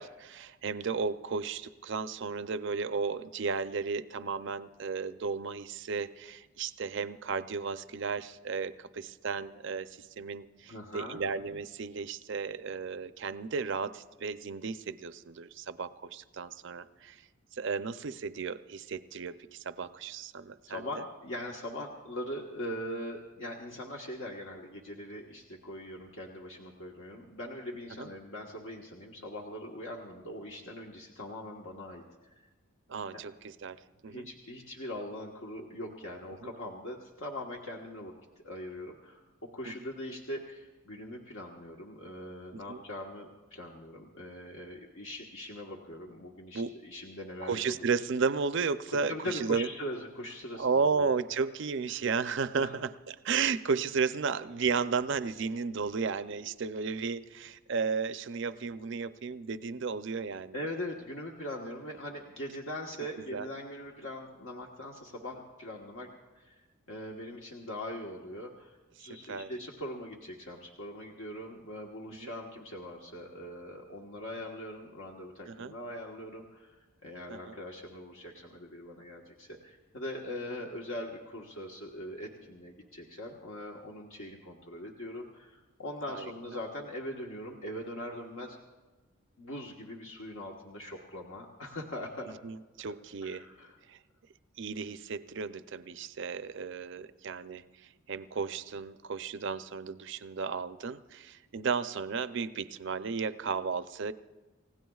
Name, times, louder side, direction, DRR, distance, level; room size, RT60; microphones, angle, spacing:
voice 1, 0.0-17.2 17.5-20.9 28.0-28.1 32.9-33.8 34.0-34.3 36.4-36.5 39.7-39.8 42.5-42.8 46.5-46.7 47.4-49.7 50.6-60.5 63.3-63.5 69.1-69.5 72.1-72.3 75.5-75.7 77.3-77.5 86.1-86.3 92.3-93.5 93.9-94.0 94.6-97.6 98.1-104.1, right 5 dB, 60° right, 12 dB, 0.5 m, -34 dB
voice 2, 10.7-11.2 20.7-32.3 34.1-39.2 39.5-47.6 48.9-51.1 52.6-52.8 60.5-66.1 66.3-66.6 66.9-88.6 89.4-92.4 93.2-93.8, left 1 dB, 65° left, -1 dB, 1.3 m, -41 dB
29.5 x 16.5 x 2.4 m, 1.2 s
head